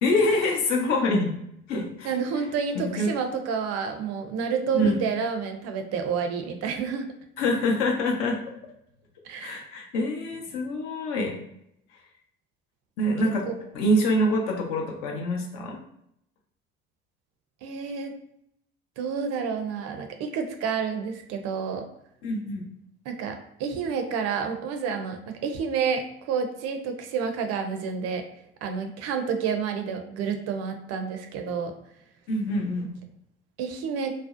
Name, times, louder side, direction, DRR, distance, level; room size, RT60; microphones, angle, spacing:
voice 1, 0.0-1.3 1.7-2.1 2.7-3.1 4.7-5.0 7.4-8.4 9.4-11.3 13.0-13.5 13.7-15.8 22.2-22.7 32.3-32.9, left 1 dB, 65° left, 0 dB, 0.7 m, -25 dB
voice 2, 2.0-7.1 9.2-9.6 13.5-13.6 17.6-18.1 19.0-21.8 23.1-28.2 28.6-31.7 33.6-34.1, right 6 dB, 55° right, 6 dB, 0.5 m, -29 dB
2.5 x 2.0 x 2.4 m, 0.76 s
hypercardioid pair, 55°, 32 cm